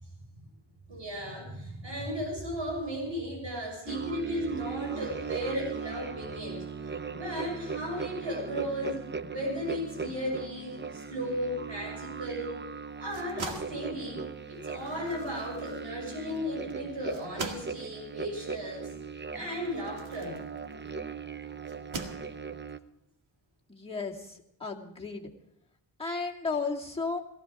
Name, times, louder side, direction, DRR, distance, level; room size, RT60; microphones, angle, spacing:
voice 1, 0.9-12.6 13.0-18.9 19.3-20.5, equal, 70° right, 0 dB, 7.0 m, -35 dB
sound 1, 3.9-22.8, right 5 dB, 25° right, 0.7 m, -39 dB
sound 2, 12.9-21.0 21.6-22.7, right 3 dB, 90° right, 2.1 m, -43 dB
voice 2, 23.7-25.3 26.0-27.2, left 4 dB, 10° left, -3 dB, 2.4 m, -34 dB
18.5 x 15.5 x 4.9 m, 0.78 s
wide cardioid pair, 95°, 46 cm